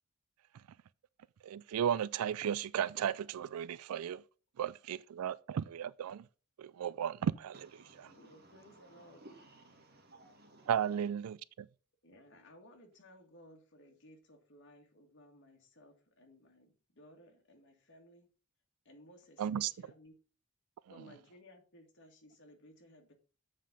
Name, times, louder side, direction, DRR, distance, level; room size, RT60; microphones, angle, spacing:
voice 1, 1.4-4.2 4.6-6.2 6.6-7.5 10.7-11.4 19.4-19.7, right 9 dB, 85° right, 0.4 m, -34 dB
voice 2, 7.5-11.1, right 2 dB, 45° right, 2.0 m, -59 dB
voice 3, 8.0-9.2 12.0-18.3 18.8-20.1 20.9-23.1, left 1 dB, 55° left, 2.0 m, -59 dB
7.6 x 5.1 x 5.3 m
head